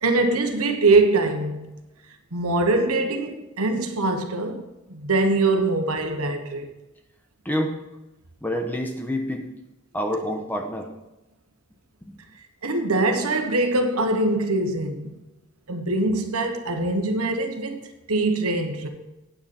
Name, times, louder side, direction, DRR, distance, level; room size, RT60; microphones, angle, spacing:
voice 1, 0.0-1.8 2.3-4.6 4.9-6.7 12.6-15.2 15.7-17.8 18.1-18.9, right 2 dB, 80° right, 1.3 m, -23 dB
voice 2, 7.4-7.8 8.4-9.4 9.9-10.9 12.0-12.2, equal, 10° left, 1.0 m, -27 dB
9.2 x 9.2 x 4.4 m
head